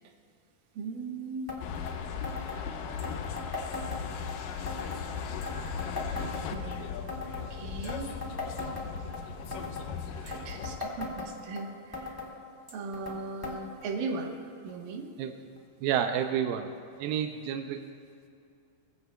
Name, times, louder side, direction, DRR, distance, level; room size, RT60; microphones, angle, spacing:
voice 1, 0.8-1.5 4.8-5.0 6.5-6.8 7.5-8.2 10.2-12.2 12.7-14.4 14.6-15.1, right 3 dB, 75° right, 2 dB, 2.8 m, -38 dB
sound 1, 1.5-1.6 1.9-2.0 2.2-2.6 3.0-4.3 4.7-5.0 5.4-6.8 7.1-7.5 7.8-9.2 9.5-9.9 10.3-11.6 11.9-12.3 12.7-13.2 13.4-13.6 13.8-13.9 14.7-14.8 15.6-15.7, left 3 dB, 20° left, 0.5 m, -38 dB
sound 2, 1.6-10.8, left 6 dB, 80° left, 2.3 m, -37 dB
voice 2, 15.8-16.7 17.0-17.9, right 9 dB, 90° right, 5 dB, 2.4 m, -29 dB
22.5 x 15.5 x 2.3 m, 2.5 s
omnidirectional pair, 4.1 m